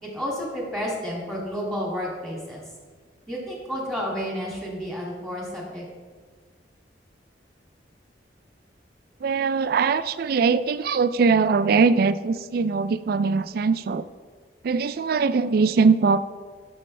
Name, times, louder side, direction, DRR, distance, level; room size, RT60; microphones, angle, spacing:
voice 1, 0.0-2.6 3.3-5.8, equal, ahead, -3 dB, 2.2 m, -31 dB
voice 2, 9.2-14.1 14.6-16.2, right 5 dB, 55° right, 13 dB, 0.3 m, -21 dB
12.0 x 6.2 x 3.3 m, 1.5 s
head